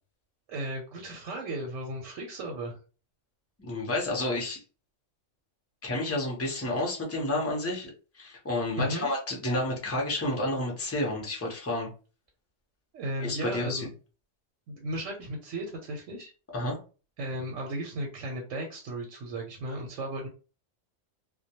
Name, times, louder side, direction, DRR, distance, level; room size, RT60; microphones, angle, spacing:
voice 1, 0.5-2.8 8.7-9.1 12.9-13.9 14.7-16.3 17.2-20.3, right 1 dB, 80° right, 1 dB, 1.0 m, -35 dB
voice 2, 3.6-4.6 5.8-7.9 8.2-11.9 13.2-13.9 16.5-16.8, left 1 dB, 20° left, -2 dB, 0.5 m, -30 dB
2.2 x 2.2 x 2.8 m, 0.35 s
omnidirectional pair, 1.3 m